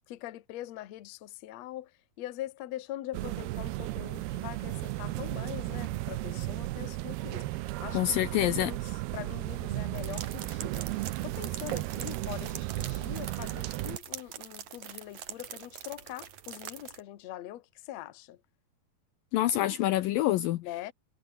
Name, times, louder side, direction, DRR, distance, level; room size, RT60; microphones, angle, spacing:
voice 1, 0.1-1.9 2.2-18.4 20.6-20.9, left 14 dB, 60° left, 1.9 m, -43 dB
sound 1, 3.1-14.0, right 18 dB, 80° right, 2.8 m, -35 dB
voice 2, 7.9-8.7 19.3-20.6, left 13 dB, 75° left, 2.3 m, -26 dB
sound 2, 9.9-17.0, right 10 dB, 55° right, 2.8 m, -44 dB
omnidirectional pair, 4.6 m